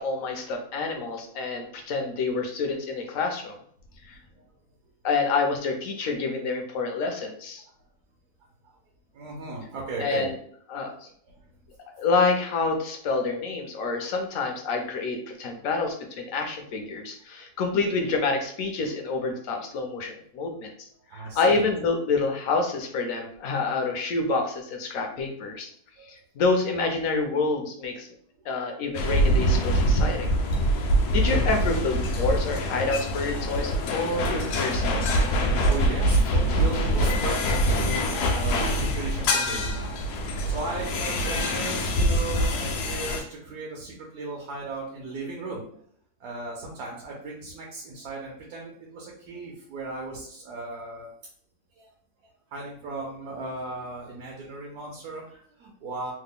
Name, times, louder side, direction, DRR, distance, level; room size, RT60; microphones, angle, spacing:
voice 1, 0.0-3.6 4.0-4.2 5.0-7.6 10.0-10.4 10.7-11.1 12.0-20.9 21.1-25.7 26.0-28.1 28.4-30.3 31.1-35.2, left 3 dB, 70° left, 3 dB, 0.9 m, -27 dB
voice 2, 9.1-10.3 10.9-11.0 11.2-11.3 21.1-21.7 26.0-26.1 35.7-37.3 37.6-45.6 46.2-51.1 51.8-51.9 52.5-56.1, right 3 dB, 75° right, -2 dB, 1.2 m, -36 dB
sound 1, 28.9-43.2, equal, 90° left, 1.2 m, -24 dB
3.2 x 2.1 x 3.6 m, 0.62 s
omnidirectional pair, 1.7 m